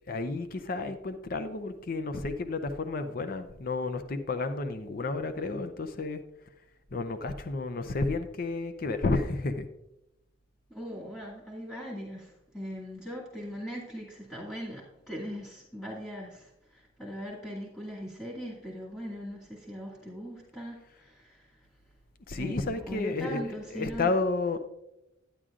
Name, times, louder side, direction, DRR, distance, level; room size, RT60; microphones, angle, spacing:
voice 1, 0.1-6.2 6.9-9.7 22.3-24.6, left 3 dB, 50° left, 8 dB, 0.5 m, -31 dB
voice 2, 10.7-21.5 22.4-24.1, equal, 15° left, -6 dB, 2.1 m, -40 dB
11.0 x 9.9 x 2.5 m, 0.89 s
head